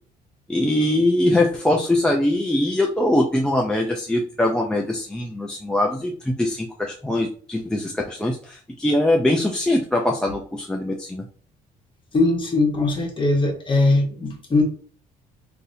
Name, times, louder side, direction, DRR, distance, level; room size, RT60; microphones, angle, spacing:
voice 1, 0.5-11.2, left 1 dB, 5° left, 0.4 m, -22 dB
voice 2, 12.1-14.6, left 2 dB, 30° left, 1.2 m, -20 dB
3.9 x 2.7 x 2.6 m
cardioid pair, 110°, 17 cm